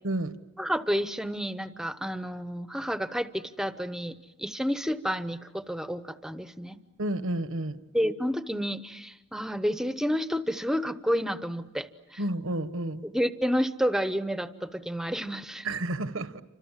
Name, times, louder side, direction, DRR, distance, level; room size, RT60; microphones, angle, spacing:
voice 1, 0.6-6.8 7.9-12.2 13.0-15.7, equal, ahead, 0.9 m, -30 dB
voice 2, 7.0-7.8 12.2-13.0 15.6-16.4, right 1 dB, 75° right, 1.2 m, -30 dB
29.5 x 26.0 x 7.4 m
head